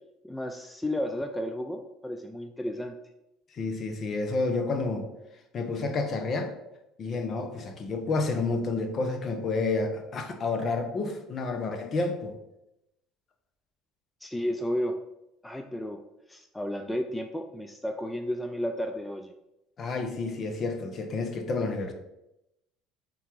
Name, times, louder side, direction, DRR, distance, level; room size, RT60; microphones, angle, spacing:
voice 1, 0.2-3.0 14.2-15.0 15.4-16.0 16.3-19.3, equal, 5° left, 5 dB, 0.5 m, -32 dB
voice 2, 3.5-5.1 5.5-6.5 7.0-12.3 19.8-21.9, left 3 dB, 45° left, 6 dB, 1.0 m, -30 dB
5.6 x 3.6 x 4.7 m, 0.89 s
supercardioid pair, 85°, 0 cm